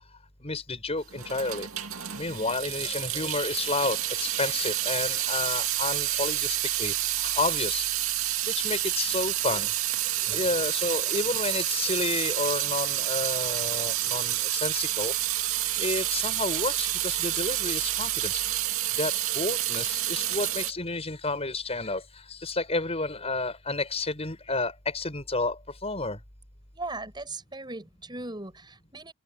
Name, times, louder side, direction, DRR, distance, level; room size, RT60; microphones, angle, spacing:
voice 1, 0.4-1.7 2.1-8.0 8.5-9.7 10.3-15.1 15.8-18.4 19.0-22.0 22.3-26.2, left 3 dB, 30° left, 5.9 m, -31 dB
Water tap faucet / Sink (filling or washing) / Drip, 1.1-20.7, right 13 dB, 80° right, 2.3 m, -29 dB
voice 2, 26.7-29.1, right 2 dB, 20° right, 6.2 m, -38 dB
head